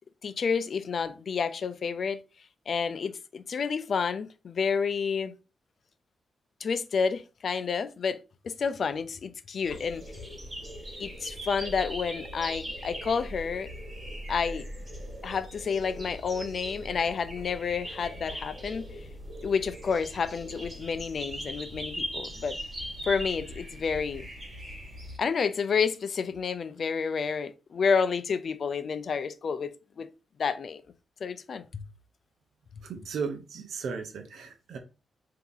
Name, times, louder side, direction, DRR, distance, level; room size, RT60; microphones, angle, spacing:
voice 1, 0.2-2.2 2.7-5.3 6.6-8.2 8.4-10.2 11.0-13.7 14.3-14.7 15.2-19.1 19.4-22.6 23.0-24.3 25.2-30.1 30.4-30.8 31.2-31.8, left 5 dB, 55° left, 0.5 m, -30 dB
sound 1, 9.6-25.2, equal, 30° right, 2.1 m, -40 dB
voice 2, 32.8-34.8, right 5 dB, 75° right, 0.6 m, -36 dB
3.5 x 2.8 x 3.9 m
cardioid pair, 100°, 0 cm